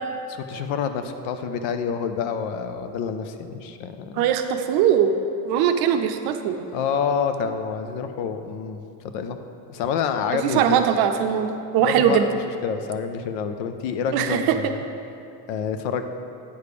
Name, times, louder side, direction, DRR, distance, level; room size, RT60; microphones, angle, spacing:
voice 1, 0.3-4.2 6.7-9.4 9.7-10.8 11.8-14.8 15.5-16.0, left 6 dB, 65° left, 8 dB, 0.7 m, -28 dB
voice 2, 4.1-5.1 5.4-6.6 10.4-12.3 14.1-14.7, right 9 dB, 50° right, 7 dB, 0.6 m, -21 dB
9.6 x 3.3 x 6.8 m, 2.6 s
supercardioid pair, 130°, 47 cm